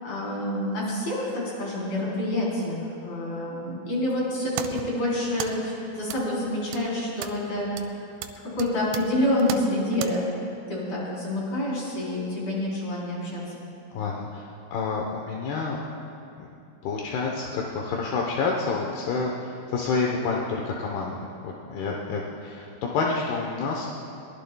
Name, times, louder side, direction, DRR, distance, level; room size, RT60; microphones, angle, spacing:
voice 1, 0.0-7.7 8.6-10.3 10.7-13.4, left 1 dB, 35° left, -6 dB, 4.5 m, -27 dB
sound 1, 4.2-10.1, right 10 dB, 90° right, 3.2 m, -38 dB
voice 2, 13.9-15.8 16.4-16.5 16.8-23.9, left 4 dB, 75° left, -1 dB, 2.5 m, -29 dB
22.5 x 20.0 x 2.3 m, 2.6 s
omnidirectional pair, 5.7 m